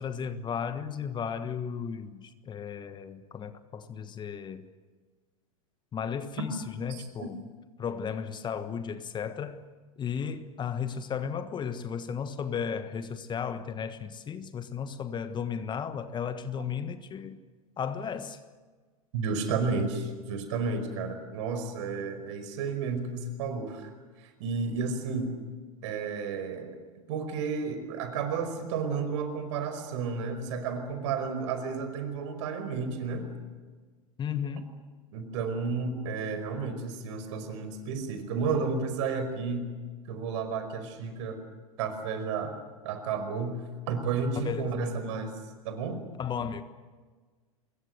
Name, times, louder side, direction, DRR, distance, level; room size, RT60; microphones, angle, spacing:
voice 1, 0.0-4.7 5.9-7.4 7.8-9.7 10.0-17.4 17.8-18.4 34.2-34.8 44.4-44.8 46.2-46.6, left 7 dB, 25° left, 11 dB, 1.4 m, -34 dB
voice 2, 19.1-23.9 24.2-25.3 25.8-26.7 27.1-33.3 35.1-39.7 40.1-41.4 41.8-42.5 42.8-45.3 45.6-46.0, right 5 dB, 55° right, 8 dB, 5.2 m, -32 dB
25.0 x 22.5 x 7.9 m, 1.4 s
figure-of-eight pair, 90°, 18 cm